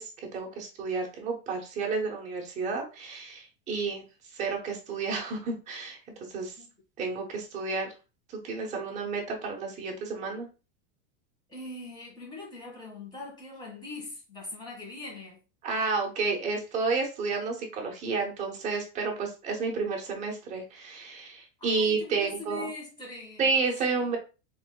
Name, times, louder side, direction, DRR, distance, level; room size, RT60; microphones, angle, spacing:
voice 1, 0.0-4.0 4.3-6.0 6.3-6.6 7.0-7.9 8.3-10.5 15.6-22.7 23.4-24.2, right 4 dB, 20° right, 1.0 m, -31 dB
voice 2, 11.5-15.4 21.6-23.5 23.9-24.1, left 2 dB, 15° left, 1.7 m, -42 dB
4.2 x 3.8 x 2.2 m
supercardioid pair, 165°, 31 cm